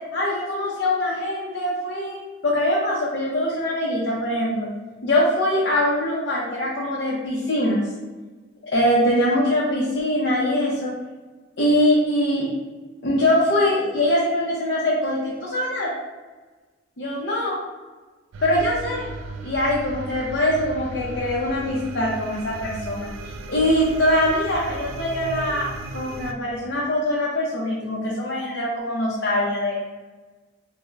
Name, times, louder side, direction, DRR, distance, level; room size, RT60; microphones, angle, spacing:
voice 1, 0.1-4.7 5.0-7.8 8.6-10.9 11.6-12.5 13.0-15.9 17.0-17.6 18.4-19.1 19.4-23.1 23.5-29.7, left 1 dB, 60° left, -5 dB, 0.6 m, -23 dB
sound 1, 18.3-26.3, right 3 dB, 90° right, 0.3 m, -36 dB
3.4 x 2.0 x 3.2 m, 1.3 s
head